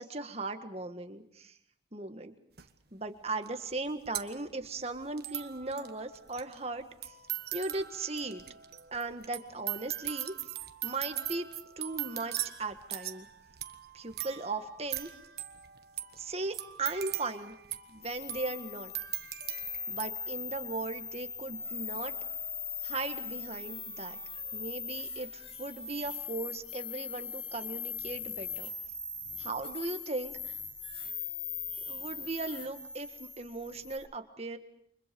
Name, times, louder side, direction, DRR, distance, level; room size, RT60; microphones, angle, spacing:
voice 1, 0.0-1.6 1.9-2.3 2.9-7.1 7.5-8.4 8.9-10.3 10.8-11.5 11.8-13.3 13.9-15.1 16.1-17.5 17.9-18.9 19.9-22.2 22.8-24.2 24.5-28.7 29.4-30.6 31.9-34.6, right 3 dB, 35° right, 7 dB, 1.7 m, -38 dB
sound 1, 2.6-2.7 3.5-3.6 3.7-20.1, right 12 dB, 55° right, 1.4 m, -40 dB
sound 2, 18.0-34.0, left 6 dB, 30° left, 4.8 m, -40 dB
29.5 x 25.0 x 5.3 m, 0.69 s
head